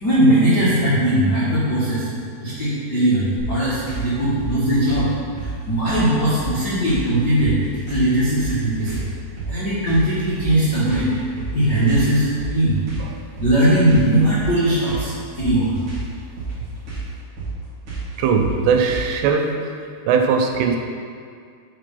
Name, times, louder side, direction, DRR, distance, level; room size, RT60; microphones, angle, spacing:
voice 1, 0.0-2.1 2.4-5.1 5.4-7.6 7.9-9.0 9.5-11.1 11.5-12.8 13.4-15.1 15.4-15.7, right 1 dB, 70° left, -11 dB, 0.9 m, -19 dB
sound 1, 3.4-19.3, right 3 dB, 40° right, 2.1 m, -31 dB
voice 2, 18.2-19.7 20.1-20.8, right 5 dB, 85° right, 4 dB, 2.8 m, -19 dB
7.3 x 5.2 x 5.6 m, 2.2 s
omnidirectional pair, 4.8 m